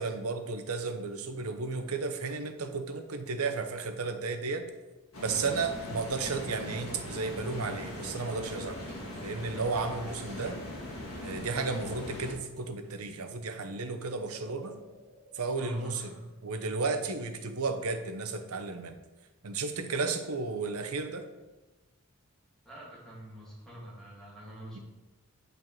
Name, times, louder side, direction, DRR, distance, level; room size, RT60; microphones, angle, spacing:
voice 1, 0.0-4.6 5.2-10.6 11.2-14.8 15.3-16.1 16.4-19.0 19.4-21.2 24.7-24.8, right 4 dB, 75° right, 7 dB, 0.9 m, -33 dB
sound 1, 5.1-12.3, left 1 dB, 70° left, 2.3 m, -40 dB
sound 2, 14.1-17.6, right 3 dB, 50° right, 2.2 m, -55 dB
voice 2, 15.6-16.3 22.6-24.8, right 1 dB, ahead, -7 dB, 2.8 m, -44 dB
9.0 x 5.2 x 4.7 m, 1.2 s
head